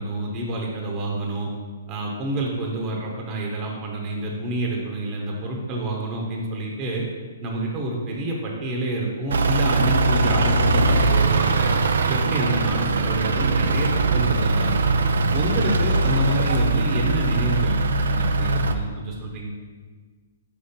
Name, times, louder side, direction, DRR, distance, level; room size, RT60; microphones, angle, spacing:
voice 1, 0.0-1.5 1.9-7.0 7.4-11.7 12.1-14.8 15.3-19.5, right 1 dB, 30° right, -1 dB, 1.1 m, -28 dB
Truck / Idling, 9.3-18.8, right 3 dB, 80° right, 0.4 m, -21 dB
5.1 x 4.9 x 4.3 m, 1.5 s
hypercardioid pair, 135°, 0 cm